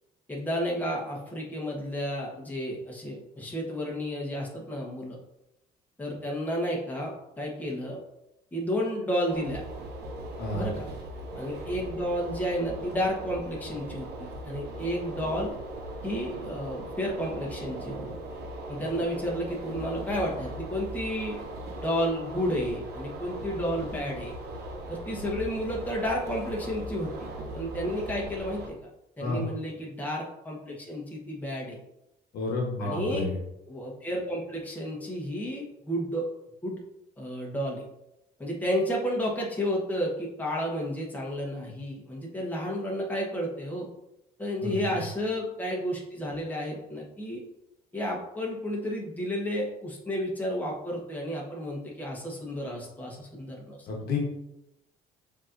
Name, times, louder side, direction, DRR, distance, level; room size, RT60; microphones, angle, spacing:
voice 1, 0.3-5.2 6.0-8.0 8.5-9.6 10.5-10.9 11.3-15.5 16.0-18.1 18.7-21.4 21.8-24.4 24.9-27.3 27.5-28.8 29.2-31.8 32.8-33.3 33.7-36.3 36.6-36.8 37.2-37.8 38.4-43.9 44.4-47.4 47.9-53.9, equal, 10° left, -3 dB, 1.2 m, -31 dB
sound 1, 9.3-28.7, right 1 dB, 70° right, 0.8 m, -39 dB
voice 2, 32.3-33.4 44.6-44.8 53.9-54.2, left 3 dB, 65° left, 0 dB, 1.1 m, -30 dB
7.1 x 2.9 x 2.6 m, 0.87 s
cardioid pair, 110°, 17 cm